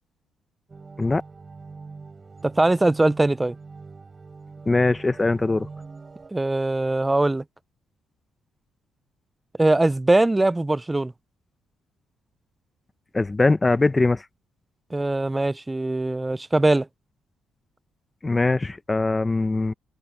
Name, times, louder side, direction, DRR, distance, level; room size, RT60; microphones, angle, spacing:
sound 1, 0.7-6.3, right 4 dB, 30° right, 7.6 m, -42 dB
voice 1, 2.4-3.5 6.3-7.4 9.6-11.1 14.9-16.9, right 2 dB, 15° right, 0.5 m, -21 dB
voice 2, 4.7-5.7 13.1-14.2 18.2-19.7, left 3 dB, 20° left, 0.9 m, -21 dB
cardioid pair, 90°, 0 cm